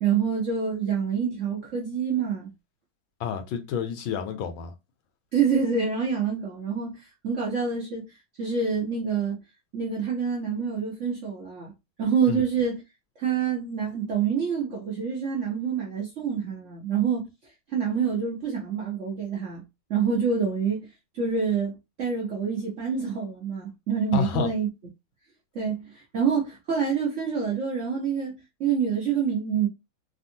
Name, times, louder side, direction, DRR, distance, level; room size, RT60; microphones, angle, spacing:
voice 1, 0.0-2.5 5.3-8.0 8.4-9.4 9.7-11.7 12.0-12.8 13.2-17.3 17.7-19.6 19.9-20.9 21.1-24.7 25.5-29.7, right 6 dB, 60° right, 0.8 m, -27 dB
voice 2, 3.2-4.7 12.3-12.4 24.1-24.5, left 6 dB, 85° left, 1.4 m, -29 dB
3.5 x 2.4 x 2.6 m
omnidirectional pair, 2.2 m